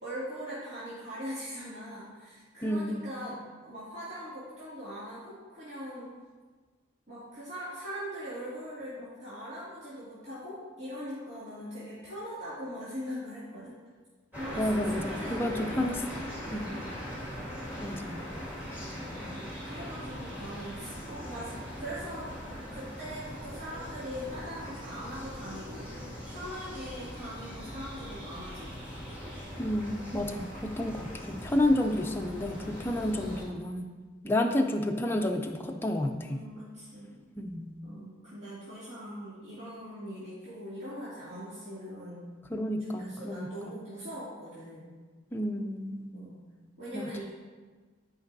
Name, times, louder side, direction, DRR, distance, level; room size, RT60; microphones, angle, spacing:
voice 1, 0.0-6.1 7.1-13.7 14.4-16.2 16.7-17.0 19.1-25.9 26.3-29.2 36.2-37.2 37.8-42.3 43.0-44.9 46.1-46.4 46.8-47.3, equal, 60° right, -12 dB, 2.4 m, -41 dB
voice 2, 2.6-3.0 14.6-16.0 16.5-16.8 17.8-18.2 29.6-34.0 34.2-36.4 37.4-37.8 42.5-43.8 45.3-46.3 46.9-47.3, left 1 dB, 10° left, 3 dB, 0.4 m, -30 dB
sound 1, 14.3-33.4, equal, 10° right, 2.0 m, -41 dB
12.0 x 5.3 x 2.7 m, 1.4 s
head